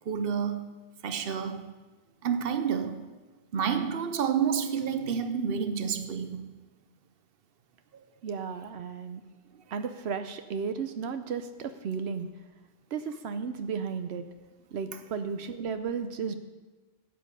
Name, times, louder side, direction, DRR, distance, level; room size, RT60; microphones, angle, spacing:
voice 1, 0.1-0.7 1.0-1.7 2.2-3.1 3.5-6.6 7.9-8.0, right 7 dB, 65° right, 1.0 m, -29 dB
voice 2, 8.2-9.2 9.7-12.3 12.9-14.2 14.7-16.3, right 6 dB, 85° right, 1.0 m, -34 dB
13.0 x 8.6 x 5.4 m
omnidirectional pair, 1.1 m